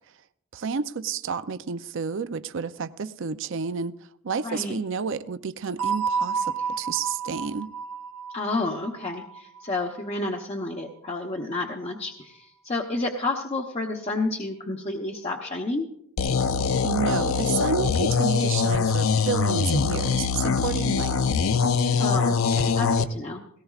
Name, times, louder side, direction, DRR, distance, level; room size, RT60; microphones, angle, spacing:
voice 1, 0.5-4.0 4.2-7.7 16.4-16.5 16.8-21.2, right 5 dB, 60° right, 0.5 m, -30 dB
voice 2, 4.4-4.8 8.3-15.9 22.0-23.4, left 2 dB, 30° left, 1.0 m, -30 dB
sound 1, 5.8-10.4, right 6 dB, 80° right, 1.8 m, -31 dB
sound 2, 16.2-23.1, left 5 dB, 65° left, 0.6 m, -23 dB
18.0 x 18.0 x 2.4 m
head